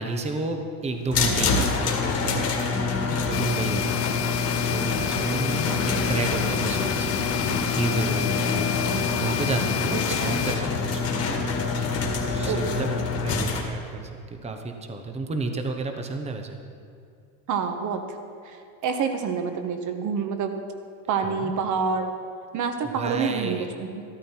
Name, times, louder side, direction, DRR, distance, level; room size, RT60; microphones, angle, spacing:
voice 1, 0.0-1.7 2.2-2.5 3.3-4.3 4.7-7.2 7.7-8.6 9.2-11.0 12.2-16.6 21.2-21.5 22.9-23.7, right 3 dB, 15° right, 5 dB, 1.0 m, -31 dB
sound 1, 1.1-13.6, left 4 dB, 35° left, 2.0 m, -26 dB
sound 2, 3.3-10.6, left 10 dB, 55° left, 0.8 m, -30 dB
voice 2, 12.4-12.8 17.5-18.0 18.4-20.6 21.1-22.1 22.5-24.0, right 5 dB, 40° right, 7 dB, 1.3 m, -28 dB
13.5 x 13.0 x 4.5 m, 2.5 s
supercardioid pair, 135°, 46 cm